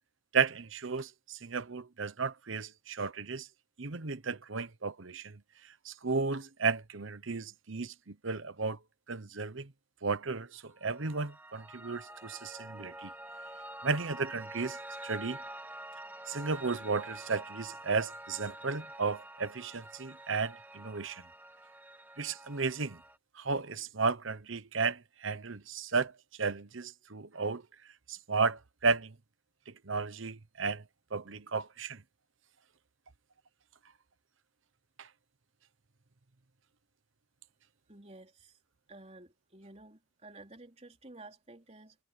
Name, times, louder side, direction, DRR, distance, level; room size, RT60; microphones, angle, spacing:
voice 1, 0.3-3.5 3.8-5.4 5.8-8.8 9.1-9.7 10.0-13.1 13.8-14.8 15.0-15.4 16.3-21.2 22.2-23.0 23.4-26.1 26.4-27.6 28.1-29.1 29.7-30.8 31.1-32.0 35.0-35.1, right 4 dB, 65° right, 1.0 m, -34 dB
Piano, 10.8-23.2, right 1 dB, 10° right, 2.1 m, -47 dB
voice 2, 37.9-38.6 38.9-42.0, right 2 dB, 30° right, 4.0 m, -52 dB
head